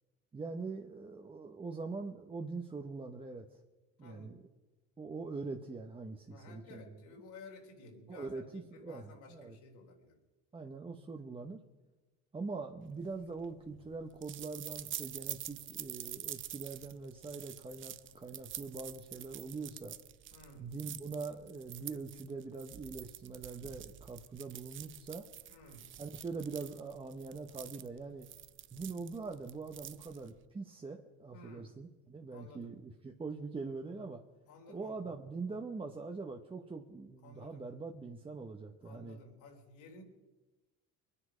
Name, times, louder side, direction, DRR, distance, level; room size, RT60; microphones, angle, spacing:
voice 1, 0.3-3.6 4.0-4.4 5.0-6.9 8.1-9.6 10.5-11.6 12.3-20.0 20.6-25.3 26.0-28.3 28.7-34.2 34.7-39.2, right 4 dB, 20° right, 3 dB, 0.9 m, -43 dB
voice 2, 4.0-4.4 6.3-10.2 20.3-20.7 25.5-25.9 31.3-31.8 32.3-32.8 34.5-35.1 37.2-37.6 38.8-40.0, left 2 dB, 75° left, 2 dB, 3.7 m, -54 dB
sound 1, 13.0-30.5, right 12 dB, 40° right, 0.6 m, -47 dB
23.0 x 9.9 x 5.0 m, 1.1 s
cardioid pair, 125°, 30 cm